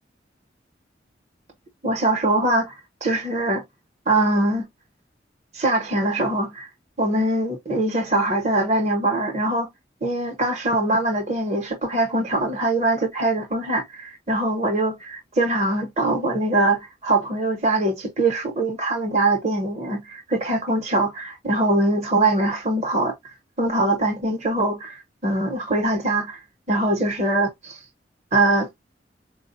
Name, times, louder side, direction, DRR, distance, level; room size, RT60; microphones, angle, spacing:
voice 1, 1.8-3.6 4.1-4.7 5.5-6.7 7.0-9.7 10.0-23.1 23.6-25.0 25.2-26.4 26.7-27.8 28.3-28.7, right 2 dB, 40° right, 0.9 m, -22 dB
4.4 x 2.3 x 2.6 m
head